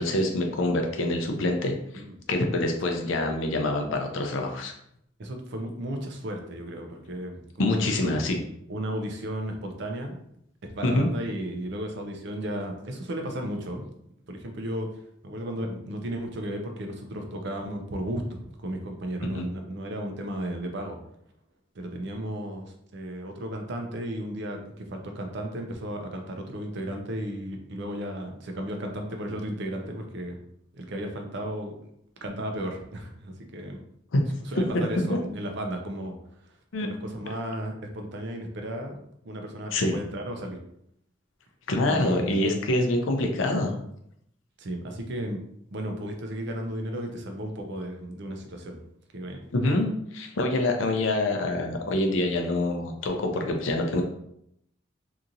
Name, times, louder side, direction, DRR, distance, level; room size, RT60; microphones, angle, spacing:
voice 1, 0.0-1.7 2.3-4.7 7.6-8.4 10.8-11.1 19.2-19.5 34.1-34.2 34.5-34.6 35.1-35.2 36.7-36.9 39.7-39.9 41.7-43.7 49.5-54.0, left 2 dB, 75° left, 4 dB, 0.5 m, -25 dB
voice 2, 5.2-8.1 8.7-10.2 10.6-13.9 14.3-14.9 15.2-21.0 21.7-30.4 30.7-31.7 32.2-33.8 34.5-36.2 36.8-40.6 41.9-42.4 44.6-45.4 45.7-48.8 49.1-49.4, right 1 dB, 60° right, 3 dB, 0.5 m, -34 dB
2.8 x 2.5 x 2.5 m, 0.73 s
head